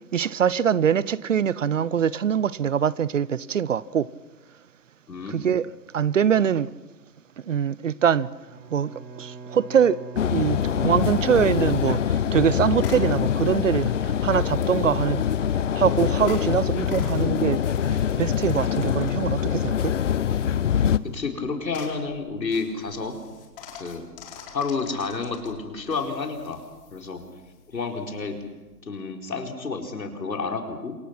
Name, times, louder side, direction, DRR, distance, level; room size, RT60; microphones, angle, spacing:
voice 1, 0.1-4.1 5.3-5.7 5.9-6.7 7.5-8.3 8.7-8.9 9.2-10.0 10.3-15.2 15.7-17.6 18.2-19.9, right 8 dB, 50° right, 0.7 m, -23 dB
voice 2, 5.1-5.4 21.0-23.2 23.8-24.1 24.5-26.6 26.9-27.2 27.7-28.4 28.9-31.0, left 4 dB, 80° left, 4.7 m, -30 dB
Bowed string instrument, 8.5-12.0, right 4 dB, 20° right, 6.4 m, -42 dB
sound 1, 10.2-21.0, left 8 dB, 50° left, 0.8 m, -24 dB
sound 2, 10.6-28.8, left 6 dB, 35° left, 4.5 m, -48 dB
27.0 x 24.0 x 6.1 m
hypercardioid pair, 150°, 49 cm